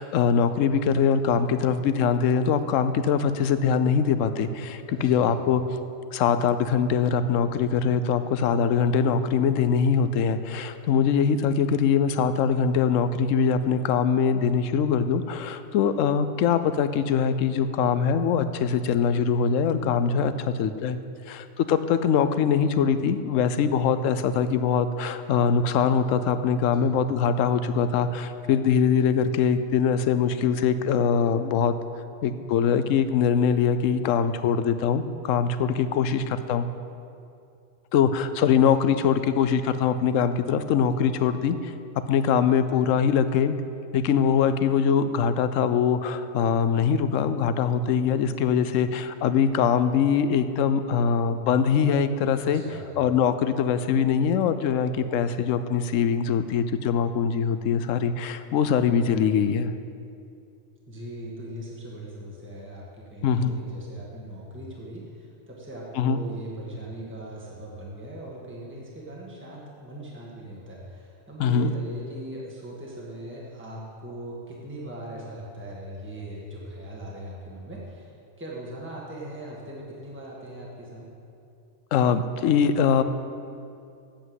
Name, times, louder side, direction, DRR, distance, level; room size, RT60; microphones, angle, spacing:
voice 1, 0.0-5.6 6.1-21.0 21.3-31.7 32.2-36.7 37.9-41.7 42.1-43.6 43.9-52.6 53.0-59.7 63.2-63.6 66.0-66.2 71.4-71.7 81.9-83.0, left 7 dB, 90° left, 11 dB, 1.0 m, -23 dB
voice 2, 4.9-5.4 26.7-27.0 52.4-52.9 60.9-78.1 78.4-81.1, right 1 dB, 10° right, -4 dB, 1.6 m, -40 dB
8.7 x 8.0 x 7.6 m, 2.5 s
omnidirectional pair, 1.3 m